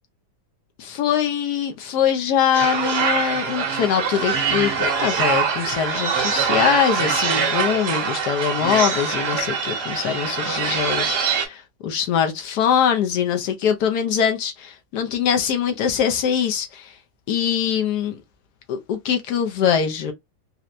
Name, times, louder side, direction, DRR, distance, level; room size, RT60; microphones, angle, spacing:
voice 1, 0.8-16.9 17.3-18.2 18.7-20.1, left 8 dB, 75° left, 1.1 m, -23 dB
sound 1, 2.5-11.5, right 6 dB, 70° right, 1.5 m, -23 dB
4.3 x 2.1 x 2.5 m
omnidirectional pair, 1.9 m